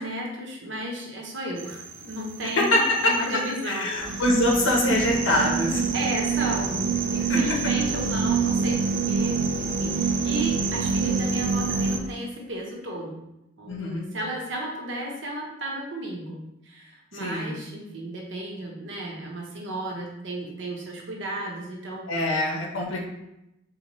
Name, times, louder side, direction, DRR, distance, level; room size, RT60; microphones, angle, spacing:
voice 1, 0.0-4.2 5.9-8.8 9.1-13.2 13.6-22.1, right 1 dB, 70° right, -1 dB, 0.9 m, -34 dB
sound 1, 1.6-12.0, right 5 dB, 45° right, 0.4 m, -26 dB
voice 2, 3.7-5.8 7.3-7.4 13.7-14.0 17.1-17.6 22.1-23.0, left 1 dB, 80° left, 0 dB, 0.8 m, -24 dB
4.1 x 2.8 x 3.0 m, 0.88 s
head